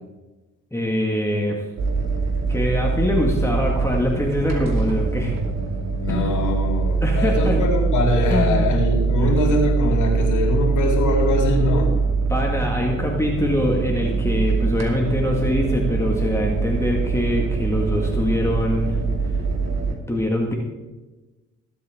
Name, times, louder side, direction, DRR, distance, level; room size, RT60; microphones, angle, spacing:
voice 1, 0.7-1.6 2.5-5.3 6.1-6.3 7.0-7.6 8.3-8.7 9.2-9.3 12.3-19.0 20.1-20.6, left 1 dB, 10° left, -1 dB, 1.8 m, -23 dB
sound 1, 1.8-19.9, right 4 dB, 60° right, 2.5 m, -23 dB
voice 2, 6.0-11.9, left 2 dB, 75° left, 0 dB, 3.5 m, -23 dB
20.0 x 8.2 x 3.7 m, 1.2 s
cardioid pair, 90°, 30 cm